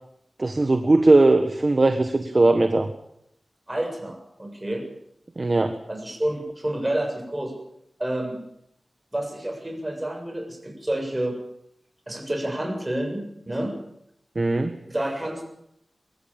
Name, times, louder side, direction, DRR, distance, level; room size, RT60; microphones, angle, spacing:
voice 1, 0.4-2.9 5.4-5.8 14.3-14.8, right 2 dB, 40° right, 8 dB, 1.5 m, -19 dB
voice 2, 3.7-4.8 5.9-7.5 8.0-8.4 9.1-11.4 12.1-13.7 14.9-15.4, right 1 dB, 20° right, 3 dB, 7.3 m, -29 dB
23.5 x 14.0 x 9.0 m, 0.76 s
wide cardioid pair, 70°, 0 cm